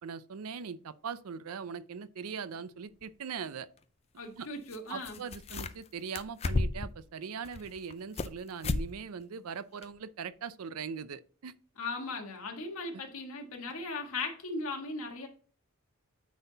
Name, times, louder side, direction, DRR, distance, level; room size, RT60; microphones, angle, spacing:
voice 1, 0.0-3.7 4.4-4.5 4.9-11.5, right 6 dB, 80° right, 0.5 m, -40 dB
sound 1, 3.0-3.1 4.7-4.8 5.0-5.9 6.1-7.0 7.4-8.3 8.6-8.9 9.2-9.3 9.8-9.9, left 2 dB, 30° left, 0.4 m, -32 dB
voice 2, 4.2-5.2 11.8-15.3, left 3 dB, 75° left, 1.6 m, -38 dB
9.4 x 4.2 x 3.9 m
head